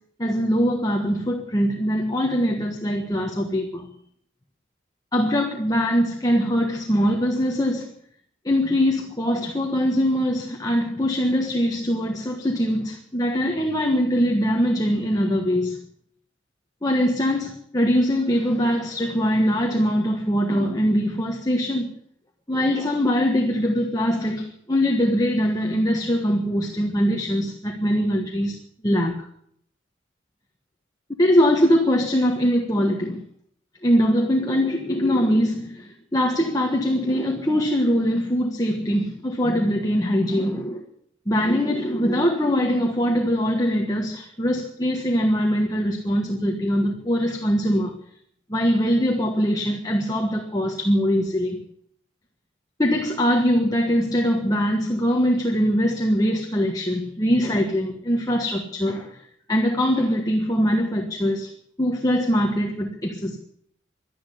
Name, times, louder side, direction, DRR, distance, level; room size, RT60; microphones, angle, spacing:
voice 1, 0.2-3.9 5.1-7.9 8.4-15.8 16.8-21.9 22.5-28.6 28.8-29.2 31.2-33.2 33.8-40.8 41.3-47.9 48.5-51.6 52.8-59.2 59.5-61.5 61.8-63.4, equal, 20° left, 1 dB, 1.5 m, -22 dB
12.0 x 11.5 x 9.7 m, 0.68 s
head